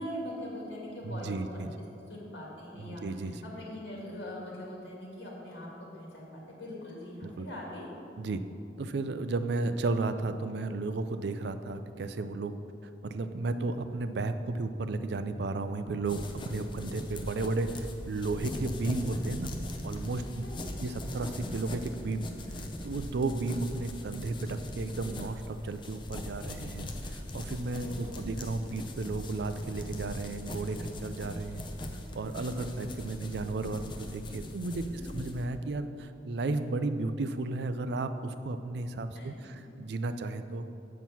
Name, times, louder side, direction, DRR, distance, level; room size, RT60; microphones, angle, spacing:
voice 1, 0.0-7.9 18.5-18.8 20.4-20.8 27.7-28.3 34.8-35.1 39.1-39.6, left 1 dB, 70° left, -3 dB, 2.1 m, -42 dB
voice 2, 1.0-1.7 2.8-3.4 7.2-7.5 8.2-8.4 8.8-12.6 12.8-19.5 19.8-20.4 20.8-31.6 32.1-34.8 35.1-40.7, right 3 dB, 65° right, 10 dB, 0.4 m, -34 dB
sound 1, 16.1-35.5, left 1 dB, 25° left, 0.6 m, -41 dB
7.3 x 5.7 x 6.0 m, 2.8 s
head